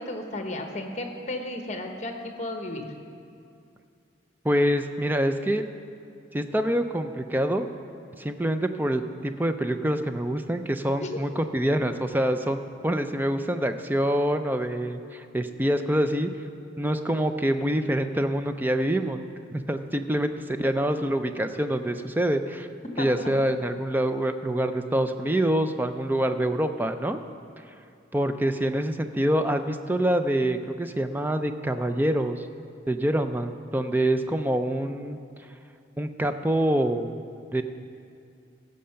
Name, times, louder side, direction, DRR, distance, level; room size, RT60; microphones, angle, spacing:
voice 1, 0.0-2.9 11.0-11.2 23.0-23.1, left 1 dB, 35° left, 4 dB, 1.0 m, -33 dB
voice 2, 4.4-5.6 6.3-7.6 8.2-16.3 16.8-19.2 19.5-22.7 23.0-27.2 28.1-32.5 32.9-35.2 36.0-37.2 37.5-37.6, right 1 dB, 10° right, 8 dB, 0.4 m, -26 dB
15.5 x 6.6 x 5.7 m, 2.4 s
head